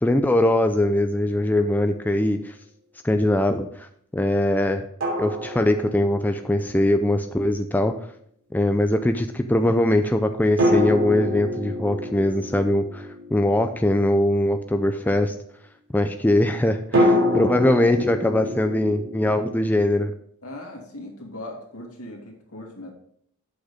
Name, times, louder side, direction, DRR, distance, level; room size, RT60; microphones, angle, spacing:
voice 1, 0.0-2.5 3.0-3.9 4.1-4.9 5.2-7.9 8.5-15.3 15.9-20.1, left 1 dB, 10° left, 6 dB, 0.4 m, -21 dB
sound 1, 1.4-1.5 5.0-6.5 10.6-14.2 16.9-19.7, left 1 dB, 60° right, 2.9 m, -25 dB
voice 2, 20.4-22.9, left 1 dB, 70° left, 0 dB, 2.5 m, -39 dB
7.9 x 6.4 x 5.0 m, 0.66 s
head